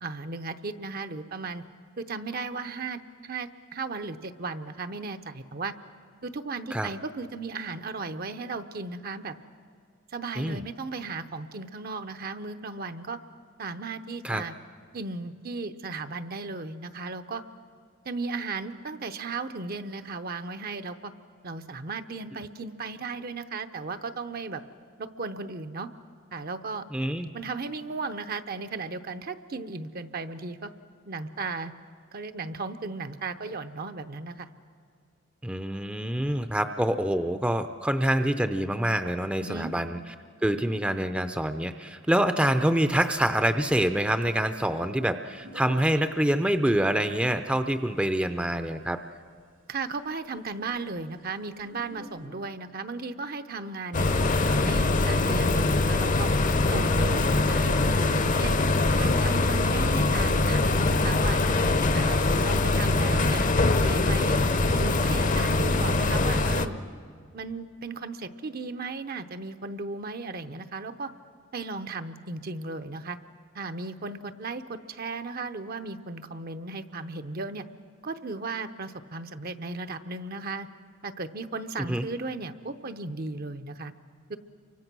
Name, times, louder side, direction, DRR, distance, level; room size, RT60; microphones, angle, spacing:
voice 1, 0.0-1.6 2.0-5.7 6.2-9.4 10.1-13.2 13.6-14.5 14.9-17.4 18.0-21.1 21.4-24.6 25.0-25.9 26.3-26.8 27.3-30.7 31.1-31.7 32.1-34.5 39.4-39.7 49.7-54.0 54.4-56.3 56.7-58.6 59.0-61.4 61.9-63.5 63.8-64.4 64.8-66.8 67.3-71.1 71.5-73.2 73.5-77.6 78.0-80.7 81.0-83.9 84.3-84.4, right 3 dB, 50° right, 10 dB, 0.8 m, -36 dB
voice 2, 26.9-27.3 35.4-40.0 40.4-49.0 81.9-82.1, right 1 dB, 5° right, 8 dB, 0.6 m, -26 dB
sound 1, 45.3-47.1 47.3-48.6 49.3-49.4 49.7-49.8 50.0-50.1 50.5-51.1 51.6-52.3, right 1 dB, 75° right, 1.9 m, -49 dB
sound 2, 53.9-66.7, left 2 dB, 40° left, 0.8 m, -23 dB
28.5 x 24.5 x 6.1 m, 2.1 s
head